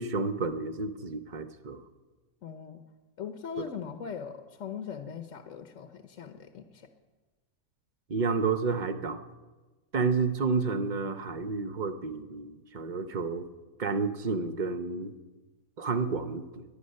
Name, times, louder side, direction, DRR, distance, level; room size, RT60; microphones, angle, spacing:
voice 1, 0.0-1.8 3.6-3.7 8.1-9.2 9.9-13.5 13.8-15.2 15.8-16.6, right 4 dB, 40° right, 10 dB, 0.8 m, -30 dB
voice 2, 2.4-2.8 3.2-6.9, left 7 dB, 65° left, 7 dB, 1.2 m, -40 dB
18.0 x 11.0 x 6.5 m, 1.2 s
omnidirectional pair, 1.5 m